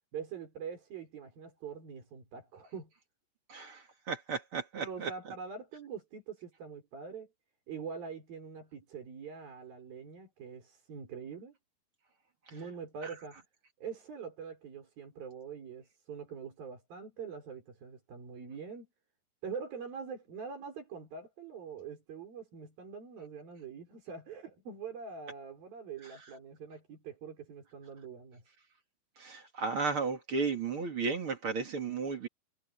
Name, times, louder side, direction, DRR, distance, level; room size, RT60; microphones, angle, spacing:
voice 1, 0.1-2.9 4.8-7.3 7.7-11.6 12.5-13.4 13.8-18.9 19.4-28.4, right 6 dB, 65° right, 7.0 m, -44 dB
voice 2, 3.5-5.3 13.0-13.1 26.0-26.1 29.2-32.3, right 4 dB, 40° right, 2.7 m, -34 dB
omnidirectional pair, 4.4 m